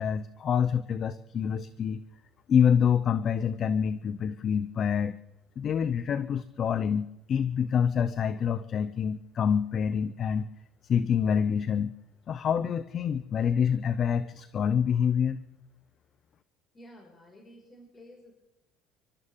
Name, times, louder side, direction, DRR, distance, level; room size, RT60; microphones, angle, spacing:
voice 1, 0.0-2.0 2.5-5.1 5.6-10.5 10.8-11.9 12.3-15.4, left 7 dB, 40° left, 15 dB, 0.6 m, -26 dB
voice 2, 16.7-18.3, equal, 25° left, 0 dB, 5.4 m, -52 dB
29.0 x 13.0 x 3.7 m, 0.96 s
supercardioid pair, 105°, 0 cm